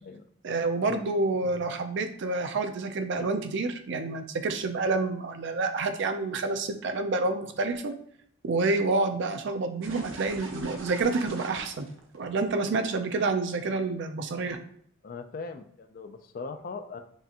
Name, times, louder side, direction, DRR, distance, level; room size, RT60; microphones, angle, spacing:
voice 1, 0.4-7.9 8.4-11.9 12.1-14.6, right 3 dB, 60° right, 7 dB, 0.5 m, -28 dB
sound 1, 9.8-12.9, right 3 dB, 85° right, 0.8 m, -42 dB
voice 2, 15.0-17.0, left 4 dB, 45° left, 7 dB, 0.4 m, -39 dB
5.4 x 2.5 x 2.8 m, 0.65 s
head